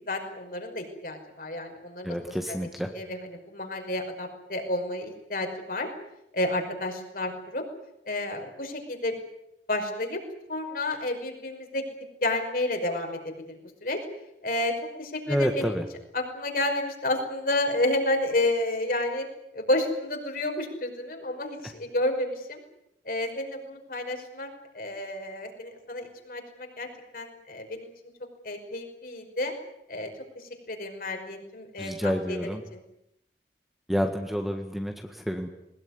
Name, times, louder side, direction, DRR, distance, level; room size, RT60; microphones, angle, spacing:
voice 1, 0.1-2.2 2.5-2.6 2.9-5.9 6.3-7.6 8.1-9.1 9.7-10.2 10.5-11.8 12.2-14.0 14.4-15.8 16.1-19.2 19.5-22.6 23.1-24.5 24.7-26.9 27.1-27.9 28.4-29.5 29.9-32.4 32.7-32.8, left 1 dB, 55° left, 4 dB, 5.5 m, -30 dB
voice 2, 2.0-2.9 15.3-15.8 31.8-32.6 33.9-35.5, equal, ahead, 4 dB, 1.7 m, -28 dB
21.0 x 20.5 x 9.7 m, 0.83 s
head